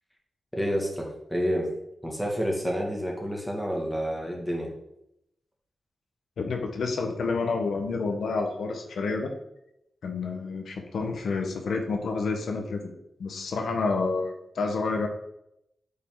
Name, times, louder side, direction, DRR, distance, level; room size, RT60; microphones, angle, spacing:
voice 1, 0.5-1.7 2.0-4.7, equal, ahead, -1 dB, 1.9 m, -29 dB
voice 2, 6.4-9.3 10.0-12.9 13.2-15.1, left 4 dB, 85° left, 4 dB, 1.1 m, -29 dB
8.2 x 5.4 x 3.8 m, 0.80 s
wide cardioid pair, 105°, 0 cm